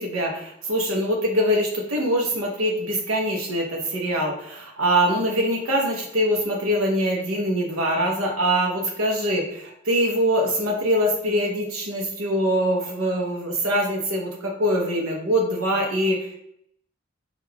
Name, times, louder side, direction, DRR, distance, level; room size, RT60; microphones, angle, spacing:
voice 1, 0.0-16.4, equal, 85° right, 0 dB, 0.8 m, -23 dB
3.7 x 2.4 x 4.5 m, 0.72 s
head